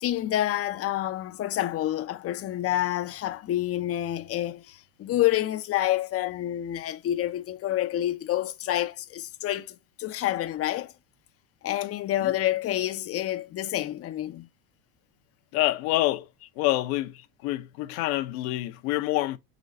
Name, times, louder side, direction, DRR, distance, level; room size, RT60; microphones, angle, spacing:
voice 1, 0.0-10.9 11.6-14.5, left 13 dB, 30° left, 0.5 m, -28 dB
voice 2, 15.5-16.3 16.6-17.2 17.4-19.4, left 17 dB, 65° left, 0.8 m, -27 dB
4.0 x 3.0 x 4.2 m
hypercardioid pair, 90°, 46 cm